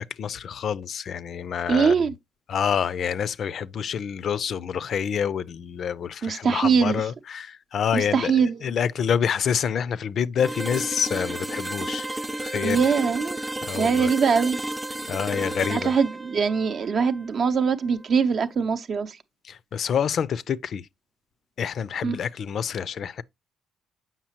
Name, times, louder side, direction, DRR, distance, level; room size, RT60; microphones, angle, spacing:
voice 1, 0.0-1.9 2.5-12.1 12.4-12.9 13.6-14.1 15.1-15.9 19.4-20.9 21.6-23.2, left 7 dB, 60° left, 0.4 m, -27 dB
voice 2, 1.7-2.1 6.2-7.0 7.9-8.6 12.6-13.4 13.8-14.6 15.7-19.2 22.0-22.2, right 6 dB, 55° right, 0.6 m, -22 dB
sound 1, 10.4-18.2, right 1 dB, 15° right, 0.4 m, -33 dB
7.3 x 5.7 x 2.9 m
cardioid pair, 90°, 0 cm